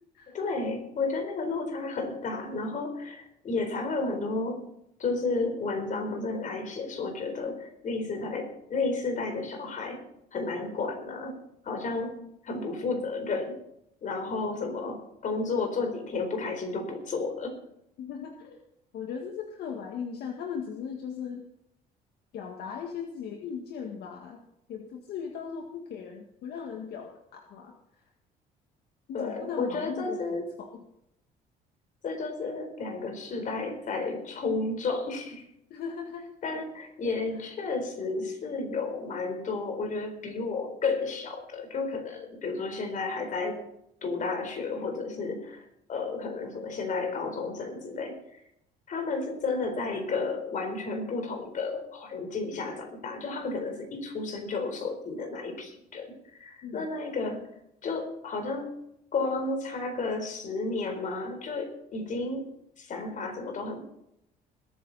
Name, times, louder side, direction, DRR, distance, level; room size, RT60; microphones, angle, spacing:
voice 1, 0.3-4.6 5.0-10.0 10.3-11.4 11.6-12.2 12.4-13.6 14.0-17.6 29.1-30.5 32.0-35.4 36.4-43.6 44.0-45.6 45.9-48.2 48.9-57.5 57.8-58.7 59.1-62.4 62.8-63.8, left 3 dB, 50° left, 5 dB, 4.2 m, -32 dB
voice 2, 18.0-18.6 18.9-21.4 22.3-24.4 24.7-27.7 29.1-30.8 35.7-36.3 56.6-56.9, left 7 dB, 70° left, 2 dB, 1.9 m, -38 dB
21.0 x 9.7 x 4.2 m, 0.78 s
cardioid pair, 110°, 17 cm